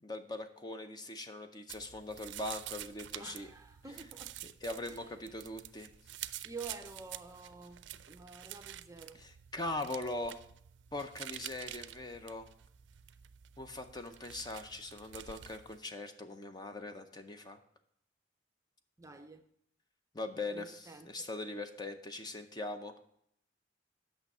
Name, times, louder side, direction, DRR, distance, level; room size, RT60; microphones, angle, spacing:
voice 1, 0.0-3.5 4.4-5.9 9.2-10.4 10.9-12.5 13.6-17.6 20.1-22.9, left 2 dB, 20° left, 7 dB, 0.6 m, -41 dB
sound 1, 1.7-15.8, right 12 dB, 70° right, 0.4 m, -48 dB
voice 2, 3.2-4.4 4.8-5.1 6.4-9.2 19.0-19.4 20.5-21.3, right 4 dB, 15° right, 7 dB, 0.6 m, -49 dB
8.7 x 6.2 x 5.4 m, 0.72 s
head